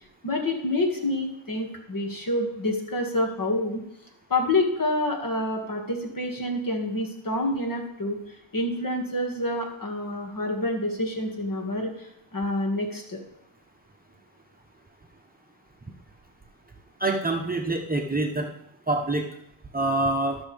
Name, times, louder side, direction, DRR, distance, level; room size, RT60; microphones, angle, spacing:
voice 1, 0.2-3.8 4.3-13.2, left 1 dB, 40° left, 2 dB, 2.1 m, -28 dB
voice 2, 17.0-18.5 18.9-19.2 19.7-20.4, right 2 dB, 20° right, 1 dB, 1.0 m, -25 dB
13.5 x 6.2 x 3.5 m, 0.81 s
cardioid pair, 75°, 50 cm